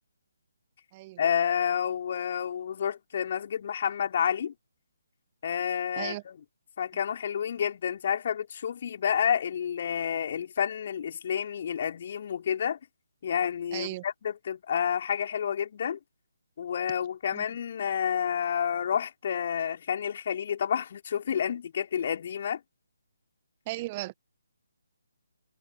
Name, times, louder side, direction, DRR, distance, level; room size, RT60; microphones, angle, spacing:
voice 1, 1.2-4.5 5.4-6.4 6.8-12.8 13.2-16.0 16.6-22.6, left 8 dB, 40° left, 4.1 m, -29 dB
voice 2, 13.7-14.0 17.3-17.4 23.7-24.1, right 19 dB, 25° right, 1.2 m, -36 dB
figure-of-eight pair, 145°, 0 cm